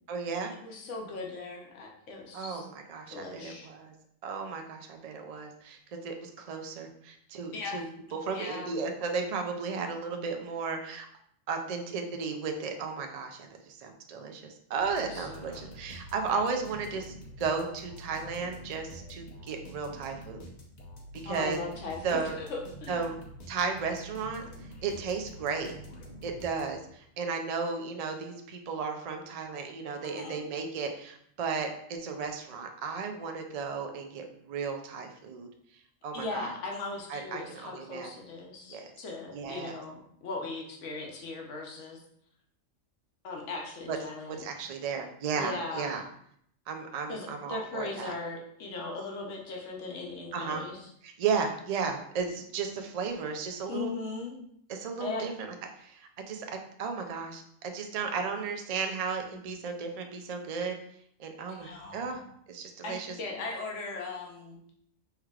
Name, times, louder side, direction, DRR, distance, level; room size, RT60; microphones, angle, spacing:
voice 1, 0.1-0.5 2.3-3.9 4.2-7.8 8.1-11.1 11.5-20.4 21.2-21.6 22.0-22.4 22.9-23.1 23.5-24.4 24.8-25.7 26.2-35.5 36.0-36.5 37.1-38.1 38.7-38.9 39.3-39.8 43.9-44.0 44.3-46.0 46.7-48.1 50.3-50.7 51.0-53.9 54.7-60.8 61.2-63.1, right 5 dB, 90° right, 4 dB, 0.3 m, -34 dB
voice 2, 0.6-2.7 3.1-3.7 7.5-7.8 8.3-8.7 15.1-15.7 21.2-23.0 30.0-30.4 36.1-42.0 43.2-44.5 45.3-46.0 47.1-50.8 53.7-54.4 55.0-55.2 61.5-62.3 62.8-64.6, left 3 dB, 70° left, 0 dB, 1.1 m, -38 dB
sound 1, 14.8-27.0, equal, 40° left, 0.7 m, -47 dB
4.6 x 3.2 x 2.3 m, 0.69 s
omnidirectional pair, 1.3 m